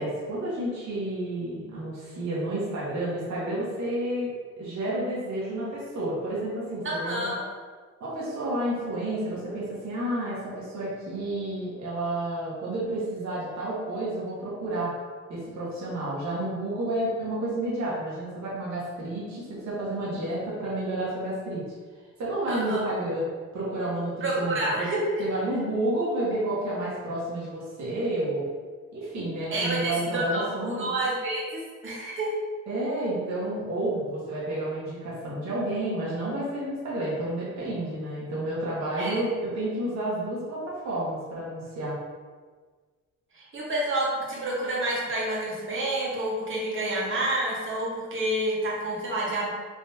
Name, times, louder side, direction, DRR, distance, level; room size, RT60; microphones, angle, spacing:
voice 1, 0.0-7.3 8.0-14.9 15.3-21.6 22.2-23.2 23.5-24.9 25.2-28.4 28.9-30.9 32.7-42.0, right 1 dB, 65° right, -7 dB, 1.3 m, -30 dB
voice 2, 6.8-7.4 22.5-22.9 24.2-25.2 29.5-32.3 38.9-39.2 43.3-49.5, right 1 dB, 40° right, -5 dB, 1.3 m, -29 dB
3.5 x 3.0 x 2.8 m, 1.5 s
cardioid pair, 90°, 30 cm